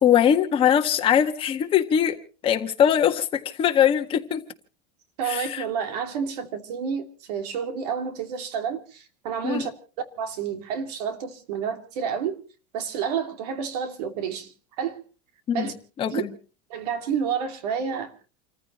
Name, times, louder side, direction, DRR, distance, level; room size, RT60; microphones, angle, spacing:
voice 1, 0.0-2.2 2.4-4.4 5.2-5.6 9.4-9.6 15.5-16.3, left 9 dB, 25° left, 1.7 m, -21 dB
voice 2, 5.2-9.7 10.2-12.4 12.7-15.0 15.5-15.7 16.1-16.2 16.7-18.3, right 7 dB, 85° right, 2.7 m, -30 dB
29.5 x 14.5 x 3.1 m
supercardioid pair, 160°, 20 cm